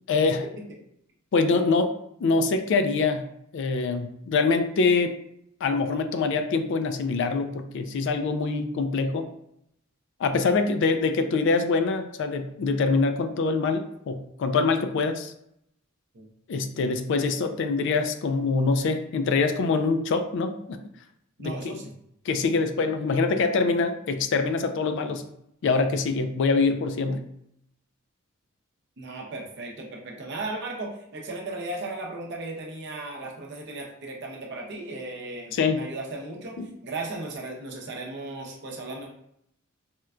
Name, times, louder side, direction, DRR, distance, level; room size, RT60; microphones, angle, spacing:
voice 1, 0.1-0.4 1.3-1.9 2.2-3.3 3.5-5.1 5.6-9.3 10.2-15.3 16.5-20.8 21.4-21.8 22.3-25.2 25.6-27.2 35.5-35.8 36.6-36.7, left 4 dB, 60° left, 8 dB, 0.3 m, -24 dB
voice 2, 21.4-21.9 29.0-36.6 36.8-39.1, right 2 dB, 55° right, 0 dB, 0.6 m, -36 dB
4.3 x 2.2 x 2.4 m, 0.74 s
head